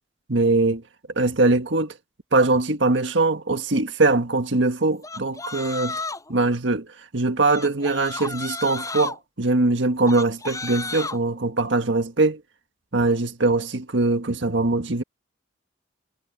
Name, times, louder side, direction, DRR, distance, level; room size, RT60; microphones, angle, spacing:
voice 1, 0.3-0.8 1.1-1.9 2.3-6.0 6.3-6.9 7.1-12.4 12.9-15.0, right 2 dB, 80° right, 1.6 m, -22 dB
sound 1, 5.0-6.3 7.5-9.1 10.1-11.2, left 3 dB, 20° left, 7.5 m, -32 dB
head